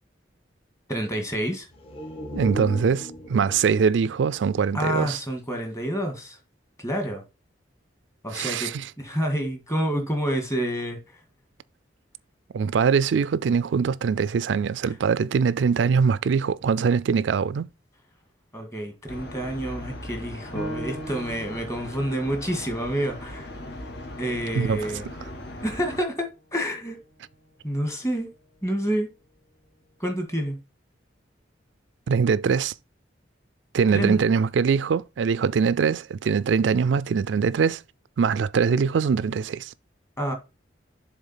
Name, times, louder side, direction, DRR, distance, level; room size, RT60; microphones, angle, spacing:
voice 1, 0.9-1.7 4.7-6.4 6.8-7.2 8.2-8.7 9.0-11.0 18.5-23.5 24.2-25.0 25.6-27.0 27.6-28.3 28.6-29.1 30.0-30.6 33.9-34.2 40.2-40.3, equal, 15° left, 1.9 m, -28 dB
sound 1, 1.7-5.4 5.8-5.9, left 1 dB, 35° left, 1.6 m, -38 dB
voice 2, 2.3-5.2 8.3-8.9 12.5-17.7 24.5-24.8 32.1-32.7 33.7-37.8 38.2-39.7, right 6 dB, 90° right, 0.4 m, -22 dB
sound 2, 19.1-26.0, left 1 dB, 65° left, 1.9 m, -39 dB
Piano, 20.5-25.7 26.2-26.3 26.9-27.4, equal, 90° left, 2.2 m, -41 dB
7.2 x 3.6 x 5.6 m
head